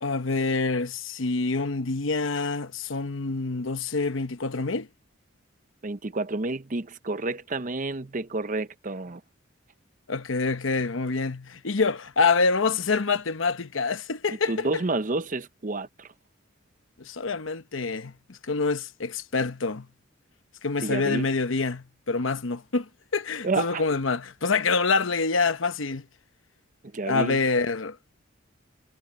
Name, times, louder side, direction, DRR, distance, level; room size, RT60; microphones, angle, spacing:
voice 1, 0.0-4.9 10.1-14.7 17.0-19.9 20.6-26.0 27.1-28.0, left 4 dB, 80° left, 1.0 m, -26 dB
voice 2, 5.8-9.2 14.3-16.1 20.8-21.3 23.4-23.8 26.9-27.4, right 3 dB, 40° right, 0.8 m, -30 dB
head